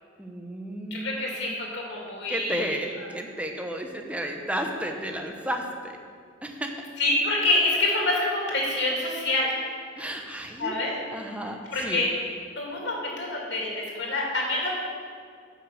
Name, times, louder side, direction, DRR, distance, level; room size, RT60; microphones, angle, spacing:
voice 1, 0.2-1.5 2.3-6.0 6.4-6.9 10.0-10.8 11.1-12.0, right 1 dB, 5° right, 3 dB, 0.8 m, -33 dB
voice 2, 0.9-2.7 7.0-9.5 10.6-10.9 11.7-12.1 12.6-14.7, left 2 dB, 60° left, -3 dB, 2.8 m, -26 dB
10.0 x 6.1 x 7.0 m, 2.2 s
head